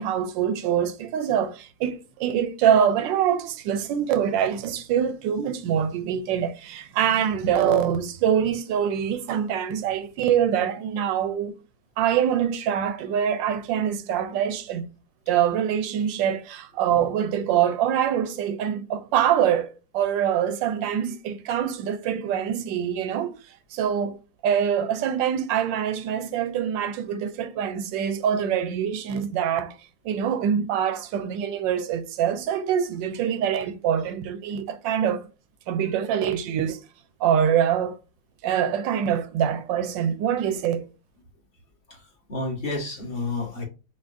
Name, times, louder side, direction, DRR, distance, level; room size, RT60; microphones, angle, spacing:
voice 1, 0.0-11.5 12.0-14.8 15.3-23.3 23.7-24.2 24.4-29.8 30.0-35.2 35.7-36.8 37.2-38.0 38.4-40.9, right 9 dB, 70° right, 1.2 m, -24 dB
voice 2, 41.9-43.6, left 2 dB, 30° left, 1.3 m, -31 dB
5.9 x 2.5 x 2.5 m
omnidirectional pair, 2.3 m